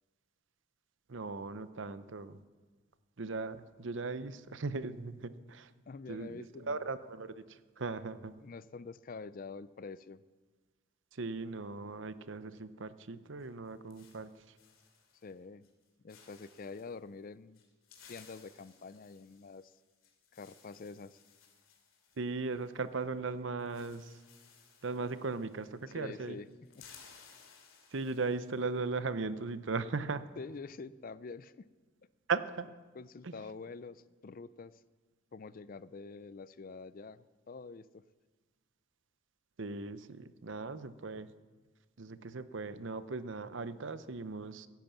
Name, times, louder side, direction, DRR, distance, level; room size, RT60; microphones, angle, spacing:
voice 1, 1.1-2.4 3.2-5.7 6.1-8.4 11.1-14.3 22.2-24.1 24.8-26.4 27.9-30.2 32.3-32.7 33.2-33.3 39.6-41.3 42.0-44.7, right 4 dB, 65° right, 13 dB, 0.7 m, -38 dB
voice 2, 5.9-6.9 8.4-10.2 15.2-15.7 16.0-17.6 18.1-19.8 20.3-21.2 25.9-26.9 30.4-31.7 32.9-34.8 35.3-38.1, left 4 dB, 45° left, 17 dB, 0.4 m, -47 dB
sound 1, 13.4-15.4 15.6-17.0 17.5-23.0 23.3-23.4 23.6-26.0 26.3-28.7, left 6 dB, 80° left, 2.7 m, -60 dB
16.5 x 10.5 x 7.2 m, 1.3 s
head